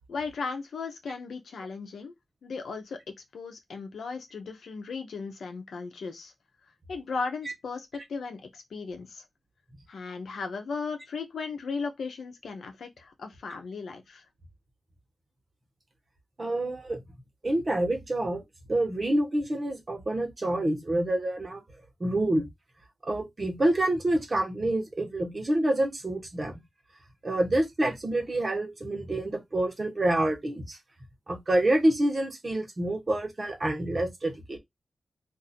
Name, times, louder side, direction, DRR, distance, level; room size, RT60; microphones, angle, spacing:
voice 1, 0.1-2.1 2.4-6.3 6.9-9.2 9.9-14.2, left 4 dB, 85° left, 0.7 m, -36 dB
voice 2, 16.4-17.0 17.4-18.4 18.7-21.6 22.0-22.5 23.0-26.6 27.2-30.8 31.3-34.6, right 1 dB, 35° right, 1.1 m, -27 dB
2.6 x 2.6 x 4.1 m
wide cardioid pair, 90°, 0 cm